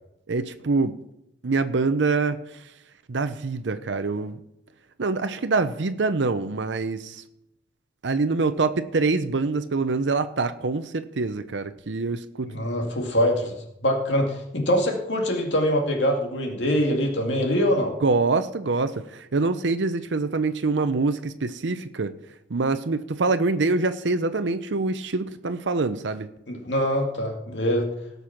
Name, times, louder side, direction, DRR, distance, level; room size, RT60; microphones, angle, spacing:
voice 1, 0.3-1.0 1.4-2.4 3.1-4.4 5.0-7.2 8.0-12.7 18.0-22.1 22.5-26.3, right 3 dB, 80° right, 10 dB, 0.7 m, -25 dB
voice 2, 12.5-13.5 13.8-17.9 26.5-27.9, equal, 80° left, 2 dB, 2.3 m, -24 dB
17.5 x 6.8 x 5.9 m, 0.84 s
head